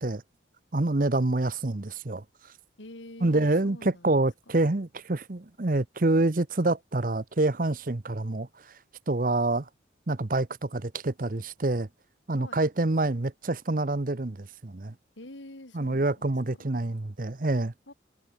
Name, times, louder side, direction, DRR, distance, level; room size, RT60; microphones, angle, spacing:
voice 1, 0.7-2.5 3.2-8.8 9.1-9.7 10.1-11.9 12.3-14.9 15.7-17.7, right 2 dB, 45° right, 0.9 m, -27 dB
voice 2, 2.8-4.3 12.3-12.7 15.2-16.7 17.9-18.0, left 1 dB, 85° left, 3.0 m, -46 dB
head